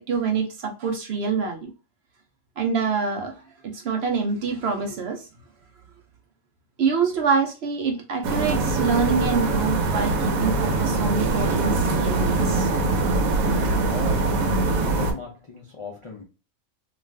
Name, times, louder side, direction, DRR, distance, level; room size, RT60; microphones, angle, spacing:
voice 1, 0.1-1.7 2.6-3.3 3.6-5.2 6.8-12.7, right 5 dB, 65° right, 0.7 m, -25 dB
sound 1, 8.2-15.1, right 3 dB, 85° right, 1.1 m, -23 dB
voice 2, 13.2-16.2, left 3 dB, 60° left, 0.3 m, -38 dB
2.5 x 2.4 x 3.2 m
omnidirectional pair, 1.4 m